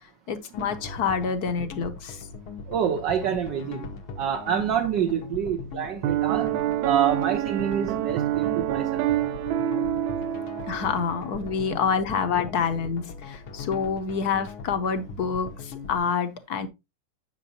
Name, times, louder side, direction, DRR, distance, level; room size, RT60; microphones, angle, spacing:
voice 1, 0.3-2.2 10.7-16.7, left 6 dB, 60° left, 1.1 m, -27 dB
sound 1, 0.5-16.0, left 4 dB, 85° left, 1.9 m, -40 dB
voice 2, 2.7-3.9 4.2-6.5 6.8-9.0, right 9 dB, 65° right, 1.4 m, -27 dB
Piano, 6.0-11.3, right 12 dB, 85° right, 1.5 m, -27 dB
9.1 x 6.1 x 2.8 m
omnidirectional pair, 2.2 m